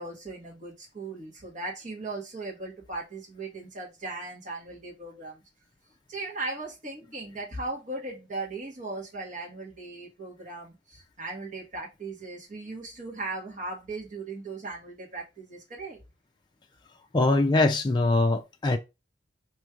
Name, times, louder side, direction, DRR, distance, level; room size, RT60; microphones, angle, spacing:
voice 1, 0.0-5.4 6.1-16.0, right 2 dB, 45° right, 1.4 m, -38 dB
voice 2, 17.1-18.8, left 2 dB, 25° left, 0.4 m, -22 dB
5.2 x 3.0 x 2.4 m
head